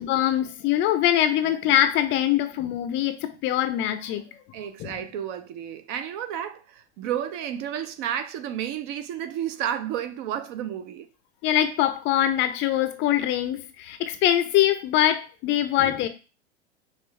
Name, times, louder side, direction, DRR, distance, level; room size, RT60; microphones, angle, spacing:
voice 1, 0.0-4.4 4.8-5.0 11.4-16.1, left 12 dB, 35° left, 0.5 m, -23 dB
voice 2, 4.5-11.1, right 10 dB, 45° right, 0.6 m, -31 dB
5.4 x 2.4 x 3.2 m
hypercardioid pair, 95°, 33 cm